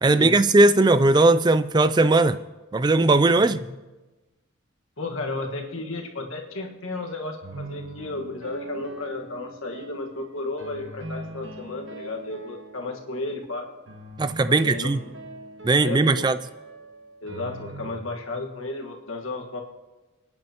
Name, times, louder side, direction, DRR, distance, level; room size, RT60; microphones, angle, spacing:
voice 1, 0.0-2.4 2.7-3.6 14.2-15.0 15.6-16.4, right 2 dB, 20° right, 13 dB, 0.3 m, -18 dB
voice 2, 5.0-13.7 14.5-15.3 15.8-16.3 17.2-19.6, left 2 dB, 90° left, 2 dB, 1.6 m, -33 dB
sound 1, 7.4-10.1 10.6-13.2 13.9-17.9, right 2 dB, 70° right, 1.3 m, -41 dB
27.0 x 9.6 x 3.0 m, 1.1 s
head